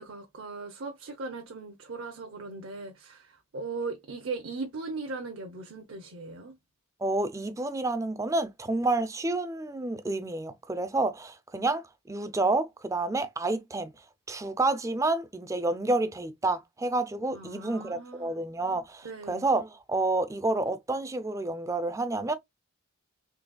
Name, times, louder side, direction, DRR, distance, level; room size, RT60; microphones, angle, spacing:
voice 1, 0.0-6.5 17.3-18.3 19.0-19.4, right 3 dB, 60° right, 0.7 m, -38 dB
voice 2, 7.0-13.9 14.3-22.3, right 2 dB, 15° right, 0.3 m, -29 dB
3.9 x 3.1 x 2.2 m
head